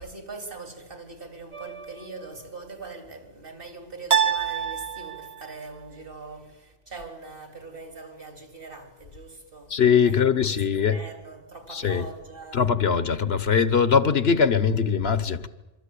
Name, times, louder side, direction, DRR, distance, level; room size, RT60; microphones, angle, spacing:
voice 1, 0.0-9.7 10.0-12.7, right 3 dB, 55° right, 3.8 m, -42 dB
sound 1, 1.5-2.2 4.1-5.6, right 7 dB, 90° right, 1.9 m, -27 dB
voice 2, 9.7-11.0 11.7-12.1 12.5-15.5, left 6 dB, 70° left, 1.4 m, -21 dB
26.0 x 24.5 x 8.5 m
omnidirectional pair, 1.1 m